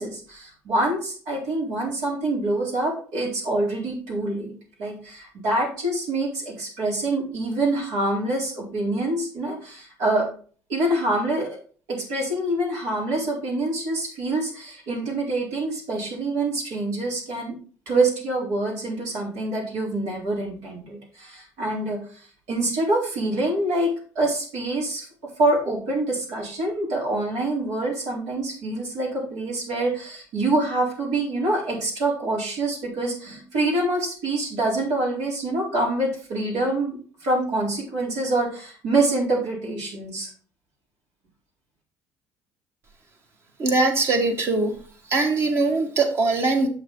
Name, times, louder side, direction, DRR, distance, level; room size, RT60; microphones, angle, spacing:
voice 1, 0.0-4.5 4.8-10.2 10.7-11.5 11.9-17.5 17.9-23.9 24.1-25.1 25.4-40.3, right 2 dB, 85° right, -3 dB, 4.1 m, -26 dB
voice 2, 43.6-44.8 45.1-46.7, right 3 dB, 45° right, 4 dB, 1.8 m, -21 dB
7.8 x 6.3 x 4.0 m, 0.42 s
cardioid pair, 110°, 6 cm